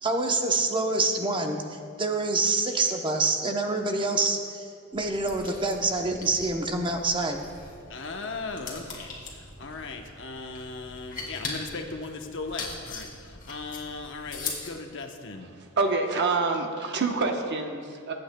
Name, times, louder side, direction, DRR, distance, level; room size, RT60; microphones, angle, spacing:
voice 1, 0.0-4.6 4.9-7.4, right 3 dB, 25° right, 4 dB, 0.8 m, -26 dB
sound 1, 4.9-14.7, left 3 dB, 40° left, 2.2 m, -41 dB
voice 2, 7.9-15.5, left 3 dB, 60° left, 4 dB, 0.9 m, -38 dB
voice 3, 15.6-18.1, right 3 dB, 55° right, 3 dB, 1.0 m, -27 dB
23.0 x 8.6 x 2.3 m, 2.3 s
head